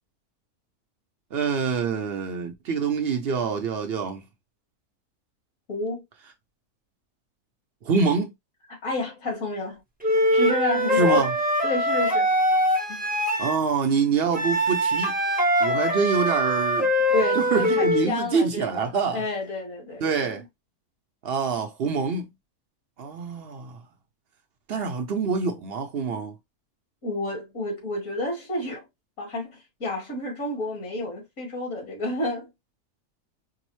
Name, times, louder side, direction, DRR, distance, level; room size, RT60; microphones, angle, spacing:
voice 1, 1.3-4.2 7.8-8.3 10.9-11.3 13.4-15.2 15.6-16.9 17.4-19.2 20.0-20.4 21.2-22.3 23.0-23.8 24.7-26.3, right 5 dB, 60° right, 0.6 m, -25 dB
voice 2, 5.7-6.0 8.7-9.8 10.3-11.3 11.6-12.3 12.9-13.0 17.1-20.4 27.0-28.9 29.2-32.5, left 2 dB, 60° left, 1.9 m, -30 dB
Wind instrument woodwind instrument, 10.0-13.5 14.3-18.1, equal, 10° right, 0.5 m, -23 dB
4.7 x 2.0 x 3.0 m
omnidirectional pair, 1.6 m